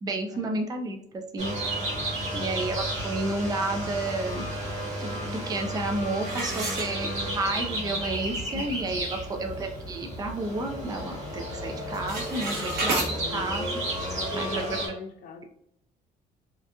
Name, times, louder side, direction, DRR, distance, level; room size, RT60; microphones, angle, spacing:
voice 1, 0.0-1.5 2.3-4.5 5.0-13.7 14.4-14.5, right 2 dB, 20° right, 4 dB, 0.4 m, -31 dB
sound 1, 1.4-14.9, right 1 dB, 40° right, 1.2 m, -33 dB
voice 2, 2.3-2.7 8.5-9.0 12.6-13.0 14.1-15.4, left 2 dB, 55° left, 2 dB, 0.7 m, -41 dB
sound 2, 3.4-14.8, left 2 dB, 90° left, 0.7 m, -49 dB
sound 3, 6.2-7.5 8.0-8.1 8.6-8.7 9.1-9.4 9.8-11.0 11.2-11.6 11.8-13.1, right 2 dB, 65° right, 1.0 m, -32 dB
2.8 x 2.4 x 2.3 m, 0.70 s
cardioid pair, 110°, 17 cm